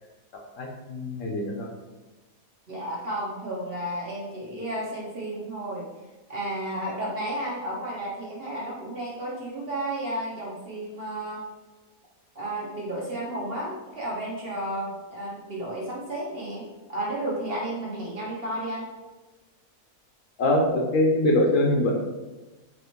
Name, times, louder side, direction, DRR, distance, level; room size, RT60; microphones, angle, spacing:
voice 1, 0.6-1.7 20.4-21.9, left 1 dB, 70° left, 0 dB, 0.9 m, -23 dB
voice 2, 2.7-5.9 6.3-11.4 12.3-18.9, right 1 dB, 50° right, -5 dB, 0.8 m, -32 dB
4.2 x 2.9 x 3.0 m, 1.2 s
omnidirectional pair, 1.5 m